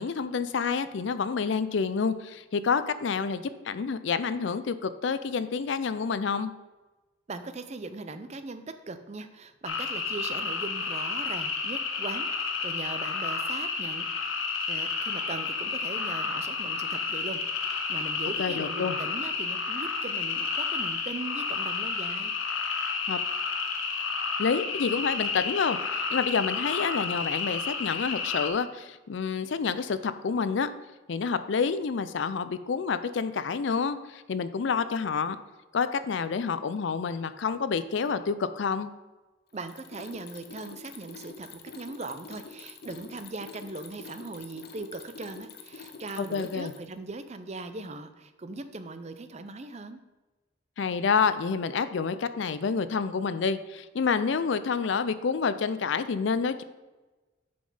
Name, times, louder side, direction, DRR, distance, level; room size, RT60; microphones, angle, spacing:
voice 1, 0.0-6.5 18.4-19.0 23.1-23.2 24.4-30.7 31.1-35.4 35.7-38.9 46.2-46.7 50.8-56.6, left 5 dB, 65° left, 13 dB, 0.4 m, -28 dB
voice 2, 7.3-14.1 14.7-22.3 39.5-50.0, right 3 dB, 35° right, 10 dB, 0.5 m, -39 dB
sound 1, 9.7-28.5, left 4 dB, 85° left, 1.0 m, -31 dB
Mechanisms, 39.5-47.0, left 5 dB, 50° left, 0.8 m, -46 dB
6.8 x 5.3 x 5.5 m, 1.2 s
head